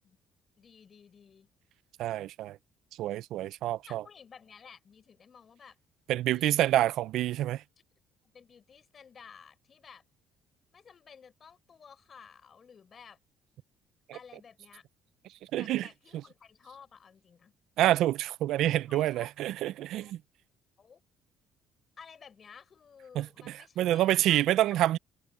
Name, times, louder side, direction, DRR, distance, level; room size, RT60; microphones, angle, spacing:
voice 1, 0.6-1.5 3.9-5.8 6.2-6.7 8.1-10.0 10.7-13.2 14.1-14.8 15.5-17.5 18.8-19.3 20.0-20.1 20.8-21.0 22.0-24.8, left 6 dB, 40° left, 4.7 m, -54 dB
voice 2, 2.0-2.6 3.0-4.0 6.1-7.6 14.1-14.2 15.5-15.9 17.8-20.2 23.2-25.0, right 13 dB, 75° right, 0.5 m, -27 dB
cardioid pair, 90°, 0 cm